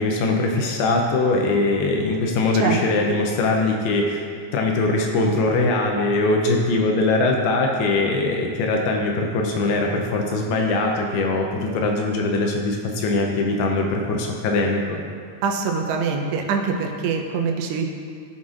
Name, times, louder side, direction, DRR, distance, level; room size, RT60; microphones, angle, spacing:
voice 1, 0.0-15.0, left 2 dB, 80° left, 1 dB, 2.5 m, -21 dB
voice 2, 15.4-17.9, right 5 dB, 90° right, 1 dB, 2.9 m, -24 dB
16.5 x 5.6 x 2.5 m, 2.2 s
omnidirectional pair, 4.8 m